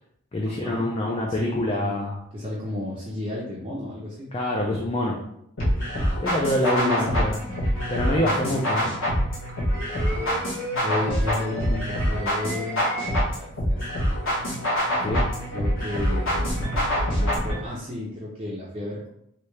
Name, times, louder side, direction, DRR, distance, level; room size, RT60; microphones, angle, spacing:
voice 1, 0.3-2.2 4.3-5.2 6.2-7.4 7.9-8.9 15.0-15.3, left 1 dB, 25° left, -2 dB, 0.4 m, -26 dB
voice 2, 1.3-2.0 2.3-4.3 5.9-6.4 6.7-7.5 8.1-8.9 9.9-10.4 10.8-14.4 15.5-19.1, left 1 dB, 25° right, -6 dB, 0.5 m, -33 dB
sound 1, 5.6-17.6, equal, 70° left, 1.3 m, -25 dB
sound 2, 9.5-13.2, right 1 dB, 10° left, 0.8 m, -35 dB
3.2 x 2.7 x 3.2 m, 0.74 s
head